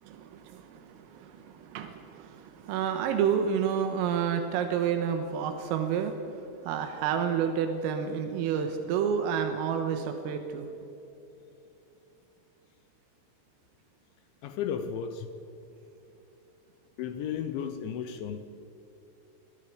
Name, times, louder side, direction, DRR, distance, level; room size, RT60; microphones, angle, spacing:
voice 1, 0.0-10.7, right 7 dB, 90° right, 6 dB, 3.9 m, -30 dB
voice 2, 14.4-15.3 17.0-18.4, left 8 dB, 75° left, 8 dB, 3.0 m, -34 dB
26.5 x 20.0 x 5.1 m, 3.0 s
omnidirectional pair, 5.9 m